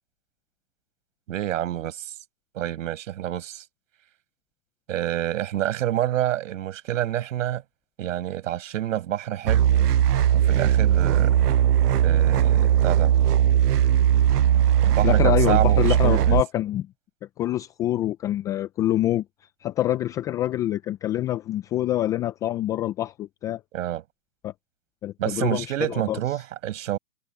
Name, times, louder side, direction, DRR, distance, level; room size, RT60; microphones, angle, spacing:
voice 1, 1.3-2.1 2.5-3.6 4.9-7.6 8.0-9.8 10.3-11.4 12.0-13.1 14.8-16.4 23.7-24.0 25.2-27.0, right 12 dB, 50° right, 7.4 m, -28 dB
sound 1, 9.5-16.4, right 10 dB, 70° right, 0.8 m, -19 dB
voice 2, 15.0-16.9 17.4-19.2 19.6-23.6 24.4-24.5 25.0-26.2, left 13 dB, 5° left, 0.5 m, -26 dB
figure-of-eight pair, 125°, 48 cm